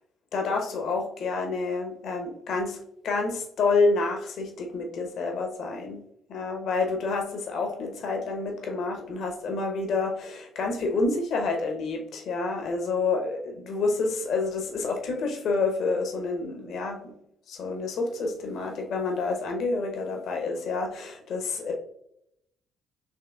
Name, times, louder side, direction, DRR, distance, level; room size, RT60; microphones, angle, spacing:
voice 1, 0.3-2.8 3.0-6.0 6.3-17.1 17.5-21.7, left 3 dB, 60° left, 3 dB, 0.9 m, -28 dB
6.4 x 3.2 x 2.3 m, 0.74 s
hypercardioid pair, 50°, 0 cm